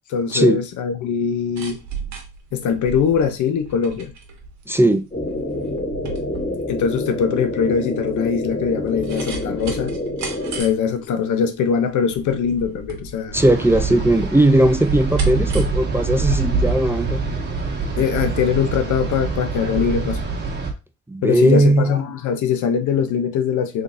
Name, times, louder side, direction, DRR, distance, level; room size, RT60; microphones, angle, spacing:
voice 1, 0.1-1.8 2.5-4.1 6.7-10.0 10.6-13.4 18.0-20.2 21.2-23.8, left 7 dB, 75° left, 0.8 m, -22 dB
sound 1, 1.2-18.8 19.1-19.2, right 5 dB, 65° right, 1.2 m, -35 dB
voice 2, 4.7-5.0 13.3-17.2 21.1-21.9, right 1 dB, 10° right, 0.4 m, -17 dB
sound 2, 5.1-10.6, left 1 dB, 35° left, 2.4 m, -27 dB
sound 3, 13.3-20.7, right 4 dB, 35° right, 1.6 m, -25 dB
3.8 x 3.5 x 2.6 m
cardioid pair, 90°, 30 cm